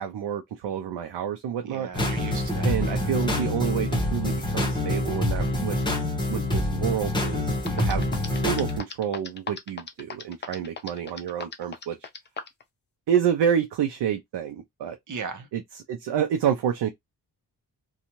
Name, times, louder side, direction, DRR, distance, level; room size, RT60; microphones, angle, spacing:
voice 1, 0.0-1.9 2.6-5.8 6.3-7.5 7.8-8.1 8.4-12.1 13.1-15.0 15.5-16.9, right 8 dB, 80° right, 0.6 m, -28 dB
voice 2, 1.6-3.1 7.6-7.9 15.1-15.5, right 5 dB, 45° right, 0.8 m, -37 dB
sound 1, 1.9-8.8, left 1 dB, 10° left, 0.8 m, -26 dB
sound 2, 7.3-7.4 7.7-12.6, left 5 dB, 25° left, 0.4 m, -36 dB
2.6 x 2.3 x 2.9 m
wide cardioid pair, 150°, 41 cm